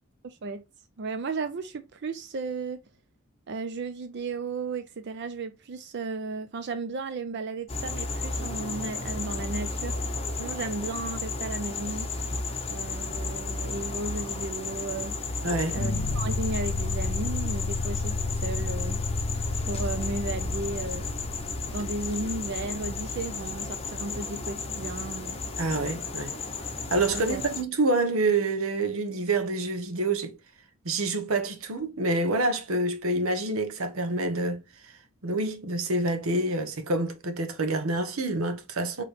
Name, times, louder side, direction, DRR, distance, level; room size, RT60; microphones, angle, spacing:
voice 1, 0.2-0.6 1.0-2.8 3.5-10.0 10.4-12.1 12.7-15.4 15.7-19.0 19.7-21.1 21.7-25.4 27.1-27.5, right 3 dB, 55° right, 0.5 m, -34 dB
sound 1, 7.7-27.6, left 3 dB, 30° left, 0.7 m, -33 dB
voice 2, 15.4-15.8 25.6-26.3 26.9-30.4 30.8-34.6 35.2-39.0, right 2 dB, 80° right, 1.0 m, -27 dB
sound 2, 15.7-24.7, left 3 dB, 80° left, 0.5 m, -33 dB
4.8 x 3.0 x 3.1 m
head